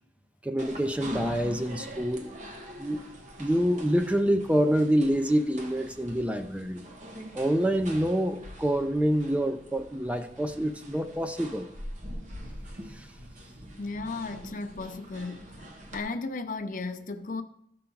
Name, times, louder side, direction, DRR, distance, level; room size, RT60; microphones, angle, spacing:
voice 1, 0.4-2.3 2.8-3.0 3.4-6.8 7.3-11.7 12.9-13.1, equal, 5° right, 0.4 m, -26 dB
sound 1, 0.6-16.0, equal, 45° right, 1.1 m, -44 dB
voice 2, 13.8-17.4, left 3 dB, 50° left, 0.6 m, -35 dB
13.0 x 5.7 x 3.9 m
head